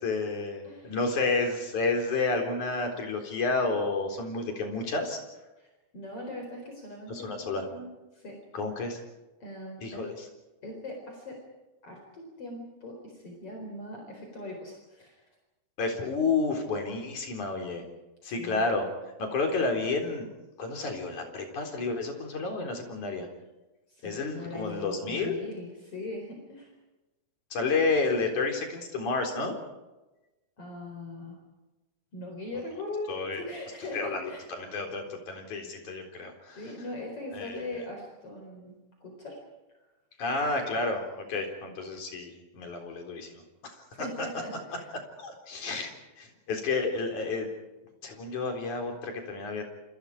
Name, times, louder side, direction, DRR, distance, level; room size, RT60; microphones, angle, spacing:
voice 1, 0.0-5.2 7.1-7.6 8.5-9.0 9.8-10.1 15.8-17.8 18.2-18.9 19.2-20.3 20.6-23.3 24.0-25.4 27.5-29.6 33.1-33.4 33.9-36.6 37.3-37.6 40.2-44.3 45.2-47.5 48.0-49.6, left 3 dB, 85° left, 3 dB, 5.4 m, -30 dB
voice 2, 5.6-8.4 9.4-10.1 10.6-11.4 11.8-15.2 18.2-18.7 23.9-26.7 30.6-31.4 32.1-34.5 34.7-34.9 36.6-39.4 43.9-44.9, left 2 dB, 50° left, 2 dB, 5.3 m, -40 dB
28.0 x 27.0 x 5.0 m, 1.1 s
omnidirectional pair, 3.4 m